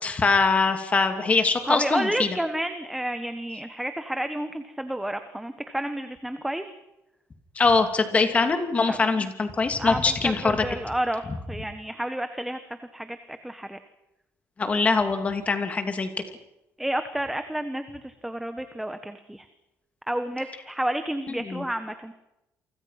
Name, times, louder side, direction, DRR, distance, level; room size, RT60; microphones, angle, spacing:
voice 1, 0.0-2.4 7.6-10.7 14.6-16.1 21.5-21.6, left 4 dB, 25° left, 7 dB, 2.8 m, -23 dB
voice 2, 1.7-6.7 8.9-9.3 9.8-11.2 11.5-12.6 12.9-13.8 16.8-19.4 20.1-22.1, right 1 dB, 5° right, 9 dB, 1.3 m, -30 dB
29.0 x 24.5 x 5.9 m, 0.90 s
cardioid pair, 150°, 6 cm